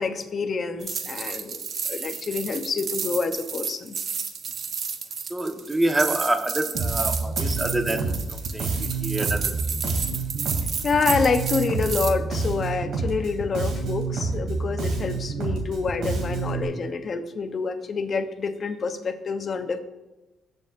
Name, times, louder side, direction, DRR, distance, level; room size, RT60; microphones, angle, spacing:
voice 1, 0.0-4.0 10.8-19.8, left 4 dB, 45° left, 7 dB, 1.0 m, -27 dB
sound 1, 0.8-12.1, right 6 dB, 55° right, 0.9 m, -31 dB
voice 2, 5.2-9.5, right 1 dB, 15° right, 4 dB, 1.4 m, -27 dB
Bass guitar, 6.7-16.6, right 4 dB, 75° right, 3.0 m, -28 dB
21.5 x 7.2 x 2.7 m, 1.1 s
cardioid pair, 90°, 0 cm